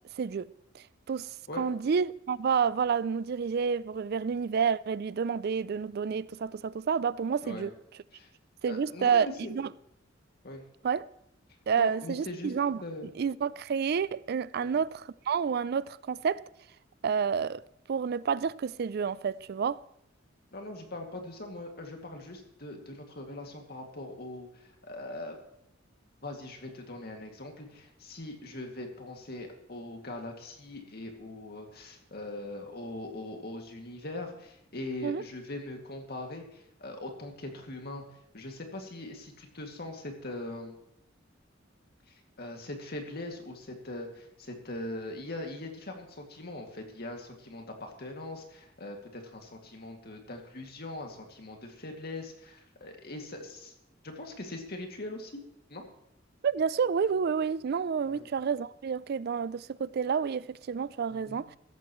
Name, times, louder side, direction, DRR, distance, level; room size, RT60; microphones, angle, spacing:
voice 1, 0.2-0.5 0.7-7.7 8.6-9.7 10.8-11.1 11.7-12.8 13.2-16.5 17.0-17.6 17.9-19.8 35.0-35.2 56.4-61.6, right 6 dB, 55° right, 0.4 m, -29 dB
voice 2, 8.7-9.5 10.4-10.6 11.8-12.5 12.8-13.1 14.6-14.8 20.5-25.4 26.2-38.0 38.3-40.7 42.1-53.7 54.0-55.3 55.7-55.8 58.0-58.3 61.1-61.4, left 1 dB, 55° left, 2.3 m, -41 dB
16.0 x 14.0 x 3.1 m
head